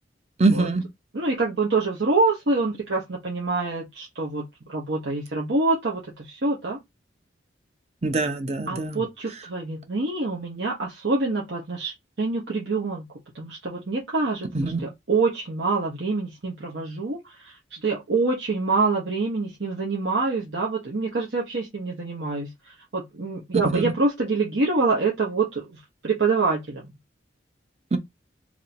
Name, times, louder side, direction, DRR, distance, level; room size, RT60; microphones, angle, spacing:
voice 1, 0.4-0.8 8.0-9.0 14.5-14.8 23.6-23.8 27.9-28.0, right 3 dB, 35° right, 0.7 m, -23 dB
voice 2, 1.1-6.8 8.7-13.1 13.3-26.9, right 3 dB, 80° right, 1.1 m, -26 dB
2.9 x 2.7 x 4.2 m
head